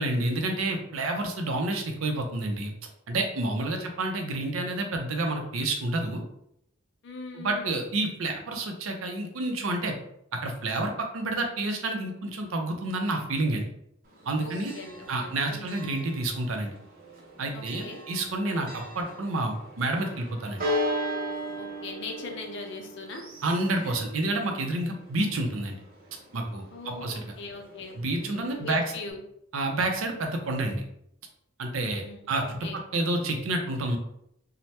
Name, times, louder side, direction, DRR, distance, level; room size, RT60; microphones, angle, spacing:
voice 1, 0.0-2.7 3.1-6.2 7.3-10.0 10.3-13.7 14.3-14.7 15.1-16.7 17.4-20.6 23.4-25.8 26.3-27.2 28.0-28.8 29.5-30.8 31.6-34.0, right 2 dB, 85° right, 3 dB, 0.5 m, -29 dB
voice 2, 3.4-3.9 7.0-7.8 14.4-15.9 17.5-18.0 18.6-18.9 21.6-23.2 23.8-24.0 26.7-29.2 31.8-32.8, left 2 dB, 60° left, 3 dB, 0.5 m, -41 dB
Church bell, 14.0-29.1, equal, 45° right, 0.7 m, -38 dB
3.2 x 2.1 x 2.8 m, 0.74 s
head